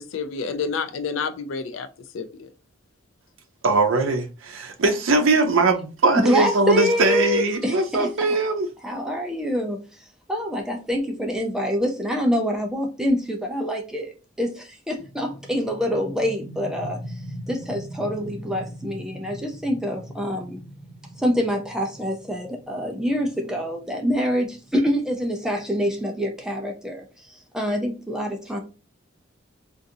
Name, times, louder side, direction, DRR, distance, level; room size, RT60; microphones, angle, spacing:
voice 1, 0.0-1.9 2.1-2.5, left 5 dB, 85° left, 0.4 m, -29 dB
voice 2, 3.6-8.7, right 3 dB, 85° right, 0.6 m, -21 dB
voice 3, 6.1-8.4 8.8-9.8 10.3-14.1 14.4-17.0 17.5-20.6 21.2-28.6, equal, 5° right, 0.5 m, -26 dB
sound 1, 15.0-26.4, right 1 dB, 20° left, 1.5 m, -41 dB
3.8 x 2.5 x 2.7 m
head